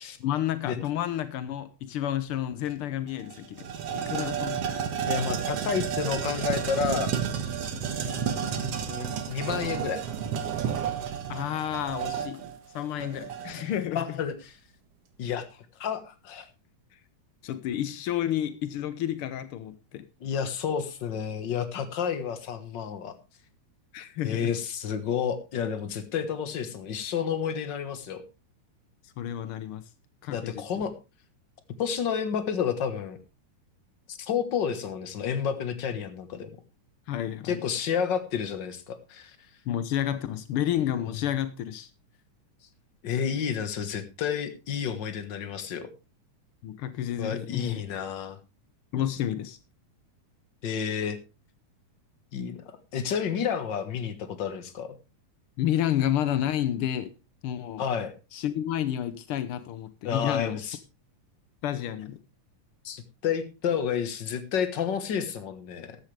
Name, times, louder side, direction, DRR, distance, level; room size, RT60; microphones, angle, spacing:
voice 1, 0.2-3.7 3.9-4.8 11.3-12.5 12.7-14.2 17.4-20.0 23.9-24.5 29.2-29.8 30.2-30.6 37.1-37.6 39.7-41.9 46.6-47.8 48.9-49.6 55.6-57.1 57.4-57.8 58.3-60.6 61.6-62.2, left 11 dB, 85° left, 12 dB, 1.2 m, -30 dB
sound 1, 2.7-2.8 3.1-13.8, right 8 dB, 55° right, 2.3 m, -31 dB
voice 2, 5.1-7.2 8.0-10.0 13.9-14.5 15.2-15.4 15.8-16.4 20.2-23.1 24.2-28.2 30.3-30.9 31.8-33.2 34.1-36.5 37.4-39.4 43.0-45.9 47.2-48.4 50.6-51.2 52.3-52.6 52.9-54.9 57.8-58.1 60.0-60.8 62.8-66.0, left 7 dB, 45° left, 10 dB, 1.6 m, -30 dB
14.0 x 12.0 x 3.3 m, 0.29 s
omnidirectional pair, 3.6 m